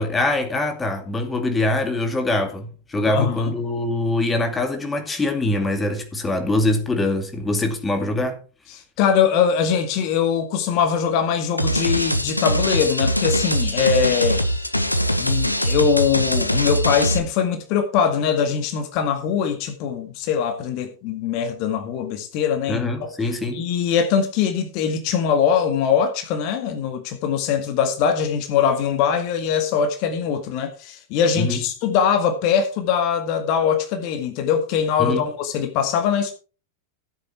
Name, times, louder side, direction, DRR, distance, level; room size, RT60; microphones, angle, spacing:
voice 1, 0.0-8.4 22.7-23.6 31.4-31.6 35.0-35.2, left 2 dB, 15° left, 2.3 m, -23 dB
voice 2, 3.1-3.5 8.7-14.4 15.2-23.1 23.5-36.3, left 7 dB, 45° left, 2.0 m, -22 dB
sound 1, 11.6-17.2, equal, 85° left, 1.2 m, -22 dB
14.0 x 8.3 x 4.4 m
figure-of-eight pair, 90°, 0 cm